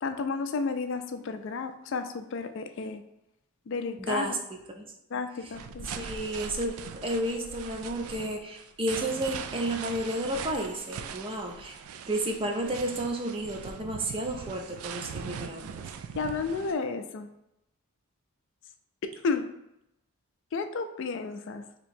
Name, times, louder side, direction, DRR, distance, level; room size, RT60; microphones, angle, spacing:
voice 1, 0.0-3.0 3.7-4.4 5.1-5.9 16.2-17.3 19.2-19.5 20.5-21.6, left 4 dB, 60° left, 8 dB, 0.3 m, -32 dB
voice 2, 4.0-4.4 4.8-4.9 6.0-11.8 12.1-15.7, right 1 dB, 25° right, 3 dB, 0.5 m, -32 dB
sound 1, 5.5-16.7, right 6 dB, 90° right, 0.3 m, -41 dB
3.0 x 2.8 x 4.2 m, 0.84 s
head